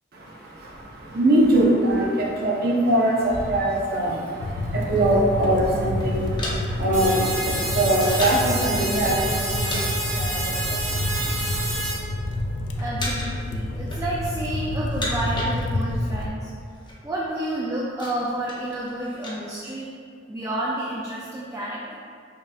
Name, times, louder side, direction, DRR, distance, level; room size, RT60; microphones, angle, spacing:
voice 1, 0.1-11.8, right 1 dB, 55° right, -3 dB, 0.6 m, -23 dB
sound 1, 4.4-16.3, left 1 dB, 70° left, 0.4 m, -29 dB
sound 2, 6.0-8.6 9.2-9.8 10.1-10.3 11.0-11.8 12.1-12.5 13.0-13.5 13.7-14.4 14.8-16.0 16.3-16.4 16.6-17.0 17.4-19.4, left 1 dB, 25° left, 0.6 m, -35 dB
sound 3, 6.9-11.9, right 2 dB, 90° right, 1.0 m, -29 dB
voice 2, 12.8-16.5 17.0-19.9 20.3-21.9, right 1 dB, 15° right, -5 dB, 0.3 m, -30 dB
5.1 x 2.7 x 2.3 m, 2.3 s
head